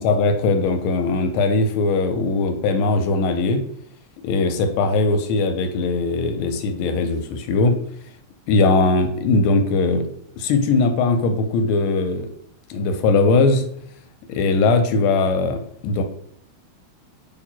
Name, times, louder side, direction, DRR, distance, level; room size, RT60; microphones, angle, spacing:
voice 1, 0.0-3.6 4.2-7.8 8.5-10.0 10.4-12.3 12.7-13.6 14.3-16.0, left 3 dB, 85° left, 7 dB, 1.5 m, -20 dB
3.0 x 2.9 x 4.3 m, 0.66 s
omnidirectional pair, 2.3 m